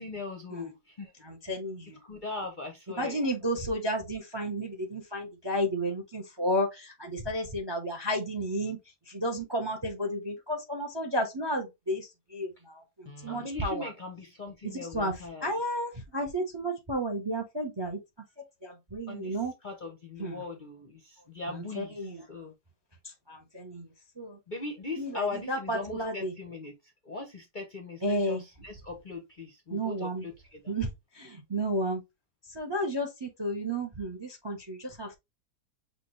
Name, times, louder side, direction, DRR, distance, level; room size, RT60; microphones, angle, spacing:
voice 1, 0.0-1.1 2.0-3.2 13.0-15.5 19.1-22.5 24.5-30.7, left 3 dB, 45° left, 0.7 m, -40 dB
voice 2, 1.2-2.0 3.0-8.8 9.1-13.9 14.9-15.1 15.4-18.0 18.6-19.5 20.2-20.4 21.5-22.2 23.3-23.9 24.2-24.4 25.0-26.3 28.0-28.4 29.7-30.2 30.7-30.9 31.1-32.0 32.5-35.1, equal, 25° right, 0.6 m, -32 dB
6.2 x 2.5 x 3.1 m
omnidirectional pair, 1.7 m